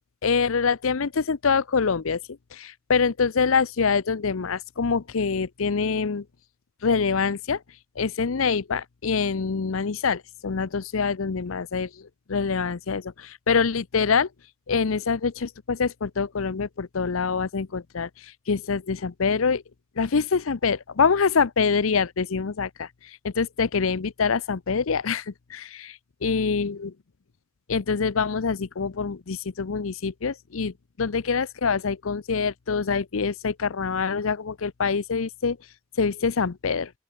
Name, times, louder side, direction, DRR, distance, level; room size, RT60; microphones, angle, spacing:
voice 1, 0.2-6.3 6.8-7.6 8.0-14.3 14.7-19.6 20.0-26.9 27.7-35.6 36.0-36.9, left 5 dB, 75° left, 0.7 m, -25 dB
open air
head